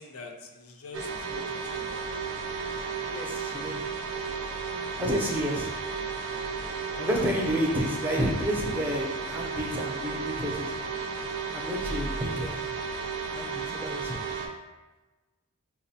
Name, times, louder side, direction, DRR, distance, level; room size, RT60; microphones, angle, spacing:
voice 1, 0.0-2.0 7.7-7.8, left 2 dB, 80° left, 3 dB, 0.4 m, -45 dB
sound 1, 0.9-14.5, right 5 dB, 80° right, 0.5 m, -33 dB
voice 2, 3.1-3.8 5.0-5.7 7.0-10.7 11.5-12.7 13.3-14.2, equal, 10° right, -1 dB, 0.4 m, -30 dB
4.5 x 2.1 x 2.7 m, 1.2 s
head